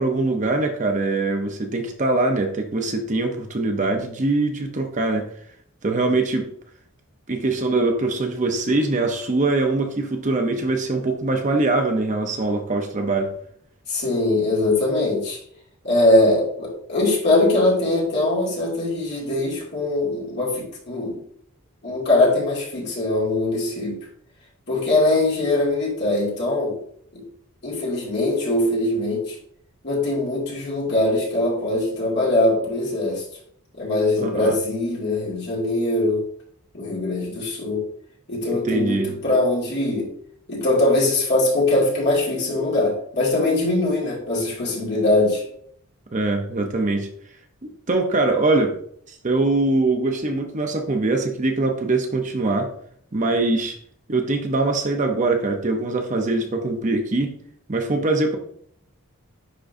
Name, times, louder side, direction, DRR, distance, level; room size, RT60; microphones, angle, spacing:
voice 1, 0.0-5.3 5.8-6.5 7.3-13.3 34.2-34.6 38.6-39.1 46.1-47.1 47.9-48.8 49.1-52.7 53.1-53.8 54.1-57.4 57.7-58.4, right 2 dB, 35° right, 4 dB, 0.7 m, -22 dB
voice 2, 13.9-15.4 15.8-21.2 21.8-24.0 24.7-26.8 27.1-27.2 27.6-29.4 29.8-33.2 33.7-36.3 36.7-37.9 38.3-40.1 40.5-45.4, left 2 dB, 50° left, -5 dB, 2.4 m, -21 dB
10.0 x 3.7 x 2.6 m, 0.63 s
head